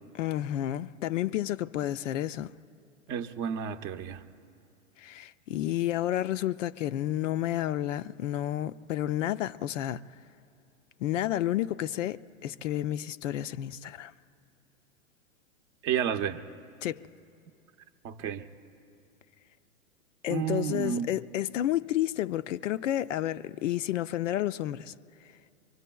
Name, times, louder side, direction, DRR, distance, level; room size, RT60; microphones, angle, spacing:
voice 1, 0.1-2.5 5.0-10.1 11.0-14.1 16.8-17.1 20.2-24.9, left 13 dB, 70° left, 0.5 m, -31 dB
voice 2, 3.1-4.2 15.8-16.4 18.0-18.5 20.3-21.1, right 8 dB, 30° right, 0.7 m, -31 dB
24.5 x 24.0 x 2.3 m
hypercardioid pair, 110°, 40 cm